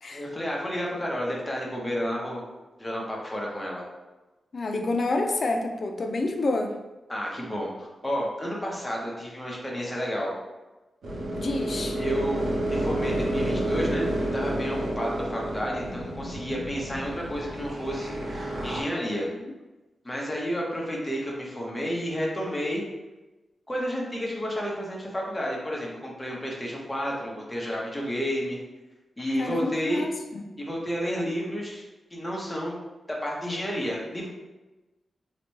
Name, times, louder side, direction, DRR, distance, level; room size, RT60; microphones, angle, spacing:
voice 1, 0.1-2.4 2.8-3.8 7.1-10.3 12.0-19.3 20.0-22.8 23.7-28.6 29.2-30.0 30.6-31.8 32.1-32.8 33.2-34.3, equal, 10° left, -3 dB, 0.7 m, -31 dB
voice 2, 4.5-6.7 11.4-12.0 19.4-19.5 29.4-30.4, left 2 dB, 45° left, 4 dB, 0.4 m, -28 dB
sound 1, 11.0-18.8, right 1 dB, 90° right, 0.7 m, -30 dB
3.9 x 2.1 x 3.1 m, 1.1 s
wide cardioid pair, 150°, 0 cm